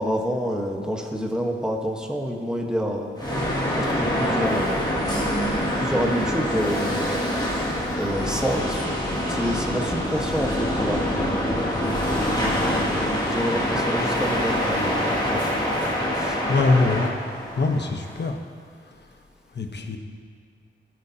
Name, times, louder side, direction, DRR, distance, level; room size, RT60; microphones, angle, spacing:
voice 1, 0.0-3.1 3.7-5.2 5.7-7.3 7.9-11.8 12.0-15.5 16.1-16.4, equal, 5° right, 0 dB, 1.2 m, -28 dB
sound 1, 3.2-18.3, equal, 20° left, 2.2 m, -25 dB
voice 2, 16.5-17.2 17.6-18.4 18.9-19.0 19.5-20.0, left 3 dB, 55° left, 4 dB, 1.1 m, -23 dB
20.0 x 9.2 x 2.8 m, 2.1 s
wide cardioid pair, 135°, 21 cm